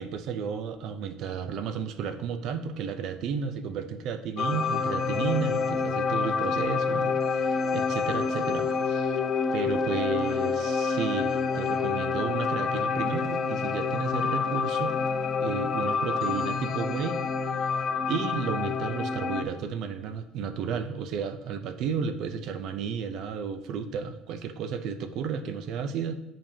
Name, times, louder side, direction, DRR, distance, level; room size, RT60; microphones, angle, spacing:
voice 1, 0.0-9.2 9.5-15.0 15.4-17.2 18.1-26.1, right 6 dB, 55° right, 9 dB, 0.5 m, -33 dB
sound 1, 4.4-19.4, left 5 dB, 35° left, 0.6 m, -28 dB
8.8 x 5.1 x 2.8 m, 0.87 s
cardioid pair, 150°, 0 cm